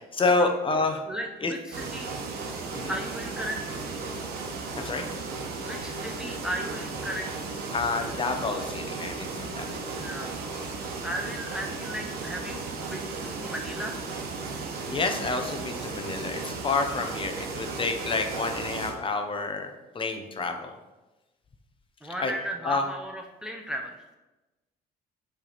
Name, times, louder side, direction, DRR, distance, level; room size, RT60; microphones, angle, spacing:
voice 1, 0.0-1.0 1.4-1.5 2.7-2.9 4.8-5.0 7.7-10.1 14.9-20.8 22.2-22.3 22.6-22.8, left 3 dB, 30° left, 5 dB, 0.7 m, -29 dB
voice 2, 1.1-2.1 2.6-3.8 5.6-7.5 10.0-14.0 22.0-24.0, equal, 5° right, 2 dB, 0.5 m, -36 dB
sound 1, 1.7-18.9, right 3 dB, 65° right, 1.0 m, -35 dB
7.1 x 3.4 x 4.0 m, 1.1 s
cardioid pair, 110°, 17 cm